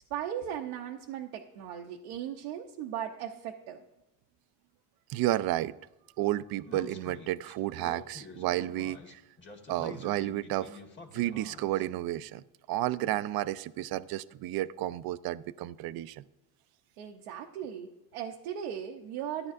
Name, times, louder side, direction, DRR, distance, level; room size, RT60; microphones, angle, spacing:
voice 1, 0.0-3.8 17.0-19.5, right 9 dB, 85° right, 1 dB, 0.8 m, -38 dB
voice 2, 5.1-5.7 6.2-9.2 9.7-10.8 11.1-16.2, right 14 dB, 55° right, 17 dB, 0.5 m, -32 dB
Speech, 6.6-11.8, left 3 dB, 25° left, 1.6 m, -48 dB
14.0 x 9.4 x 2.5 m, 0.97 s
supercardioid pair, 95°, 45 cm